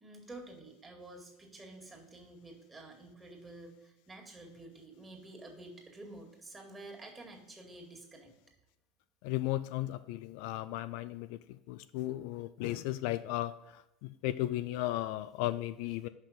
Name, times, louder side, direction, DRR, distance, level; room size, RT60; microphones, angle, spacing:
voice 1, 0.0-8.3, right 2 dB, 20° right, 1 dB, 2.1 m, -50 dB
voice 2, 9.2-11.4 11.7-16.1, left 15 dB, 60° left, 13 dB, 0.3 m, -35 dB
5.8 x 5.7 x 5.0 m, 0.92 s
hypercardioid pair, 80°, 0 cm